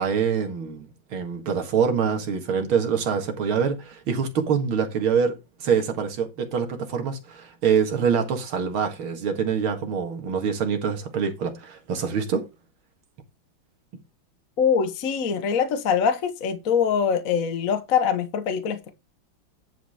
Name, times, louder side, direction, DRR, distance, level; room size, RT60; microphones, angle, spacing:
voice 1, 0.0-5.3 5.6-12.4, right 6 dB, 85° right, 2.5 m, -25 dB
voice 2, 14.6-18.9, left 7 dB, 50° left, 1.3 m, -23 dB
10.5 x 4.7 x 4.9 m
omnidirectional pair, 2.2 m